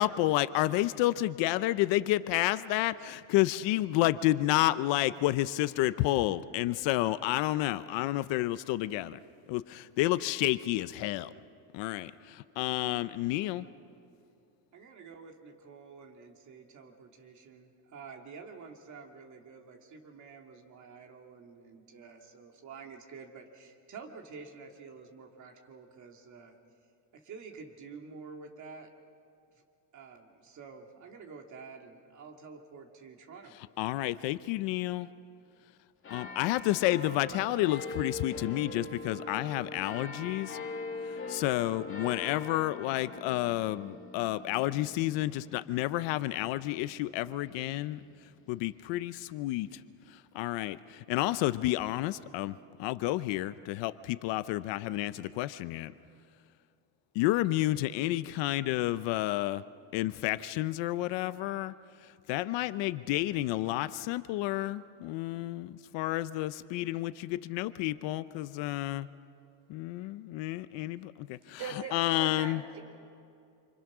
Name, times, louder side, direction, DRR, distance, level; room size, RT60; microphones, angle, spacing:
voice 1, 0.0-9.2 9.5-11.3 11.7-13.7 33.8-35.1 36.1-40.6 41.3-48.0 48.5-49.7 50.3-55.9 57.1-59.6 59.9-61.7 62.3-69.1 69.7-71.6 71.9-72.6, left 16 dB, 60° left, 14 dB, 0.8 m, -30 dB
voice 2, 14.7-26.6 27.1-28.9 29.5-29.6 29.9-33.6, right 5 dB, 35° right, 2 dB, 2.4 m, -49 dB
sound 1, 36.0-48.9 49.6-49.7, left 3 dB, 25° left, 2.5 m, -43 dB
voice 3, 71.6-72.8, right 5 dB, 55° right, 4 dB, 4.2 m, -40 dB
28.0 x 25.5 x 6.1 m, 2.5 s
cardioid pair, 155°, 48 cm